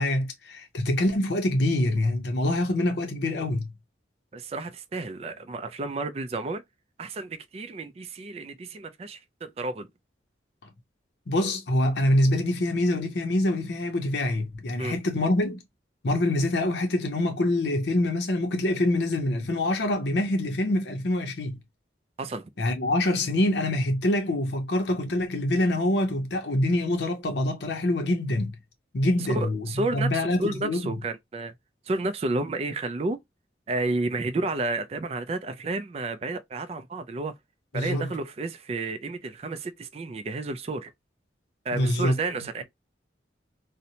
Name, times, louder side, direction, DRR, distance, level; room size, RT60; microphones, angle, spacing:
voice 1, 0.0-3.7 11.3-15.6 16.0-21.6 22.6-28.6 28.9-30.9 37.7-38.1 41.7-42.2, left 1 dB, 65° left, 0.6 m, -25 dB
voice 2, 4.3-6.6 7.0-9.9 14.8-15.0 22.2-22.5 29.3-31.5 31.9-33.2 33.7-37.3 37.7-40.9 41.7-42.6, right 2 dB, 35° right, 0.3 m, -31 dB
2.7 x 2.1 x 2.7 m
head